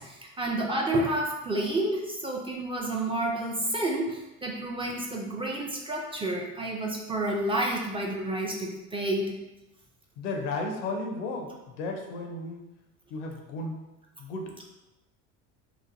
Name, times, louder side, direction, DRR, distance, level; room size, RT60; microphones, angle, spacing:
voice 1, 0.0-9.4, right 1 dB, 15° right, -1 dB, 0.3 m, -30 dB
voice 2, 10.2-12.6 13.1-13.8 14.2-14.5, left 2 dB, 85° left, 2 dB, 0.7 m, -34 dB
3.0 x 2.2 x 2.5 m, 0.97 s
supercardioid pair, 85°, 36 cm